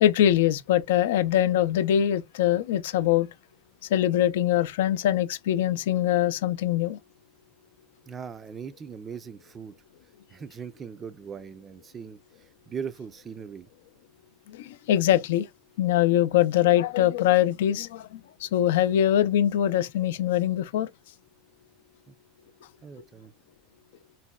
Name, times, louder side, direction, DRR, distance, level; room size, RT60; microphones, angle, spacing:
voice 1, 0.0-3.3 3.9-7.0 14.5-15.5 15.8-20.9, left 11 dB, 85° left, 0.3 m, -23 dB
voice 2, 8.1-9.7 10.3-13.7 22.1-22.2 22.8-23.3, right 6 dB, 25° right, 0.4 m, -40 dB
3.9 x 2.1 x 2.2 m
supercardioid pair, 125°, 0 cm